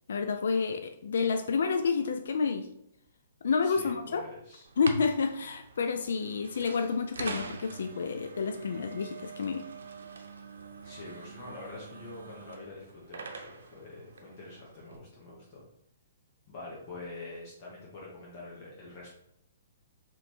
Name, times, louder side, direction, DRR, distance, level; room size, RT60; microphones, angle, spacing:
voice 1, 0.1-2.7 3.4-4.2 4.8-9.7, left 5 dB, 70° left, 6 dB, 0.3 m, -29 dB
voice 2, 3.6-4.7 10.8-15.6 16.5-19.2, left 2 dB, 30° left, -5 dB, 0.9 m, -45 dB
sound 1, 4.6-15.0, right 4 dB, 90° right, 0.6 m, -44 dB
3.2 x 3.0 x 4.3 m, 0.79 s
hypercardioid pair, 165°, 0 cm